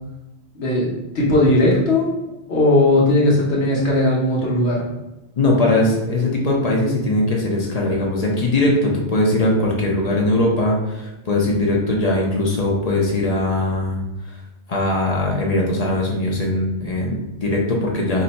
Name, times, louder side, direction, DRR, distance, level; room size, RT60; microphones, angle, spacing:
voice 1, 0.5-2.1 2.5-4.9, left 1 dB, 70° left, -4 dB, 1.0 m, -17 dB
voice 2, 5.4-14.0 14.7-18.2, left 2 dB, 50° left, -1 dB, 0.5 m, -20 dB
2.6 x 2.1 x 3.9 m, 0.99 s
omnidirectional pair, 1.2 m